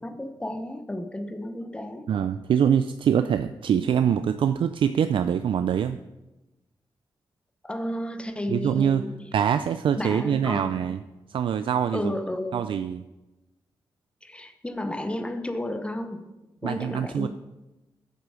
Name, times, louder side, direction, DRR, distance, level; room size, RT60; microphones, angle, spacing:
voice 1, 0.0-2.1 7.6-9.2 10.0-10.7 11.9-12.7 14.2-16.3 16.6-17.3, left 1 dB, 10° left, 8 dB, 0.9 m, -32 dB
voice 2, 2.1-6.0 8.5-9.0 9.3-11.0 11.3-12.1 12.5-13.0 16.6-17.3, right 8 dB, 75° right, 10 dB, 0.4 m, -24 dB
8.3 x 8.2 x 4.9 m, 1.0 s
cardioid pair, 95°, 9 cm